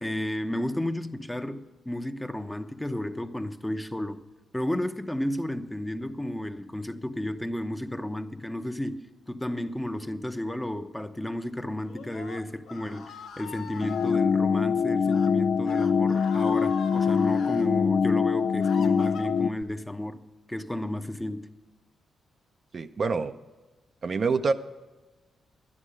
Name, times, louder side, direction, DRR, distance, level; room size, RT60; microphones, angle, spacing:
voice 1, 0.0-4.2 4.5-20.2 20.5-21.5, left 1 dB, 10° left, 0.9 m, -32 dB
Screaming, 11.8-14.2 15.0-15.3 15.6-17.7 18.2-19.6, left 5 dB, 80° left, 0.9 m, -43 dB
sound 1, 13.8-19.5, left 6 dB, 65° left, 0.3 m, -24 dB
voice 2, 22.7-23.3 24.0-24.5, right 4 dB, 50° right, 0.6 m, -26 dB
11.5 x 9.9 x 6.3 m
supercardioid pair, 50°, 0 cm